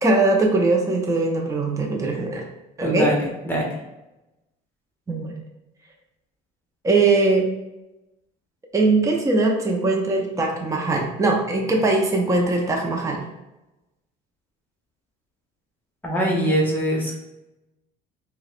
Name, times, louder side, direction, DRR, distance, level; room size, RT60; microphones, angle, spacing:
voice 1, 0.0-2.4 2.8-3.1 5.1-5.3 6.8-7.5 8.7-13.2, right 3 dB, 15° right, 0 dB, 0.6 m, -21 dB
voice 2, 2.8-3.1 3.4-3.7 16.0-17.2, right 1 dB, 10° left, -3 dB, 1.0 m, -22 dB
4.5 x 2.2 x 2.4 m, 0.96 s
cardioid pair, 100°, 21 cm